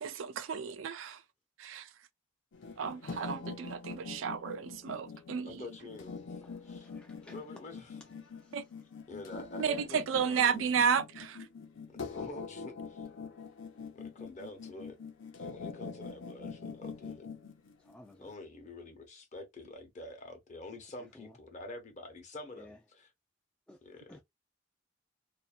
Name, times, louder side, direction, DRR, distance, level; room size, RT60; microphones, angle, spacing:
voice 1, 0.0-1.2 1.6-1.9 2.8-5.6 8.5-8.6 9.6-11.5, right 7 dB, 80° right, 0.4 m, -32 dB
Spring in workshop, 2.5-18.3, left 4 dB, 80° left, 0.6 m, -44 dB
voice 2, 5.4-6.9 7.3-8.0 9.1-10.7 11.9-13.1 13.9-14.9 15.4-17.3 18.2-23.1 23.8-24.2, left 2 dB, 40° left, 0.8 m, -47 dB
voice 3, 6.4-7.4 8.4-8.6 17.8-18.3 21.2-21.3 22.6-22.8 23.7-23.8 24.1-24.2, left 1 dB, 5° left, 0.3 m, -56 dB
2.6 x 2.2 x 2.4 m
head